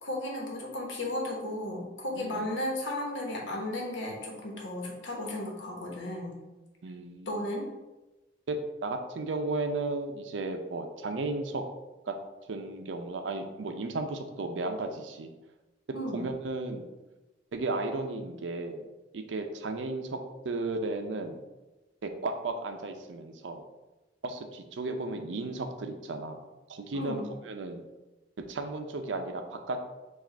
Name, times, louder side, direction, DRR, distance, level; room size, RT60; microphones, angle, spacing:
voice 1, 0.0-6.3 7.3-7.6 15.9-16.2 26.9-27.2, left 1 dB, 90° left, -1 dB, 1.1 m, -34 dB
voice 2, 2.2-2.5 6.8-7.4 8.5-11.6 12.1-12.2 12.5-15.3 16.1-16.9 17.5-18.9 19.1-20.2 20.4-21.4 22.0-23.6 24.2-26.4 26.7-27.2 27.4-27.8 28.5-29.8, right 2 dB, 80° right, 5 dB, 0.5 m, -34 dB
4.8 x 2.4 x 4.4 m, 1.1 s
head